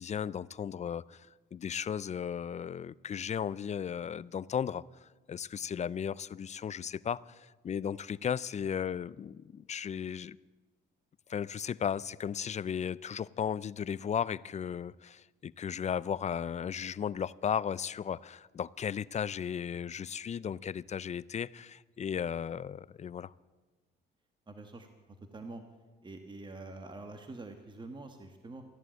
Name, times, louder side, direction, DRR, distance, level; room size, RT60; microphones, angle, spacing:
voice 1, 0.0-10.4 11.3-23.3, left 8 dB, 35° left, 21 dB, 0.4 m, -35 dB
voice 2, 24.5-24.9 25.3-25.6 26.0-28.6, right 2 dB, 25° right, 6 dB, 1.4 m, -45 dB
14.5 x 11.0 x 9.0 m, 1.3 s
cardioid pair, 90°, 20 cm